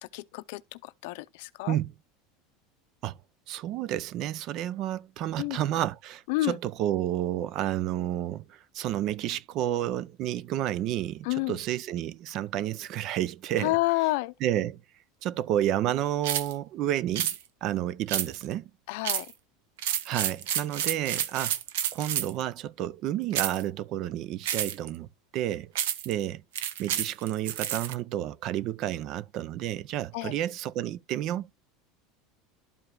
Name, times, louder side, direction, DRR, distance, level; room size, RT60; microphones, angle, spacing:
voice 1, 0.0-1.8 5.4-5.6 6.3-6.6 11.2-11.6 13.6-14.3 18.9-19.3 30.1-30.3, left 20 dB, 70° left, 0.5 m, -29 dB
voice 2, 3.5-13.8 14.4-14.8 15.2-17.3 17.6-18.7 20.0-21.6 21.9-25.7 26.1-26.4 26.8-31.5, right 12 dB, 45° right, 0.4 m, -30 dB
sound 1, 16.2-16.5 17.2-17.4 18.1-18.5 19.0-19.3 19.8-22.4 23.3-23.6 24.5-24.9 25.8-26.1 26.6-27.9, right 10 dB, 85° right, 0.7 m, -30 dB
12.0 x 4.9 x 2.2 m
supercardioid pair, 145°, 0 cm